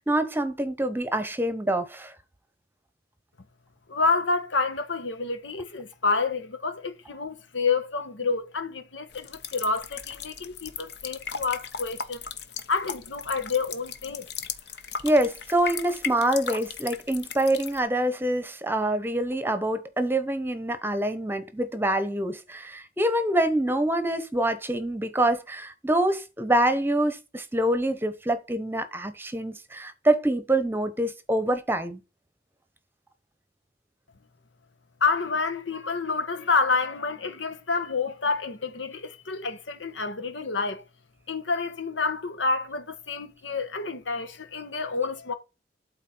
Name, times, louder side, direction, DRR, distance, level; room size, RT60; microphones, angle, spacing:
voice 1, 0.0-2.1 15.0-32.0, right 1 dB, 10° right, 0.9 m, -25 dB
voice 2, 3.9-12.2 12.7-14.3 35.0-40.8 41.3-45.3, left 4 dB, 90° left, 1.3 m, -28 dB
sound 1, 9.1-17.8, left 7 dB, 60° left, 1.0 m, -37 dB
12.5 x 4.2 x 4.4 m
head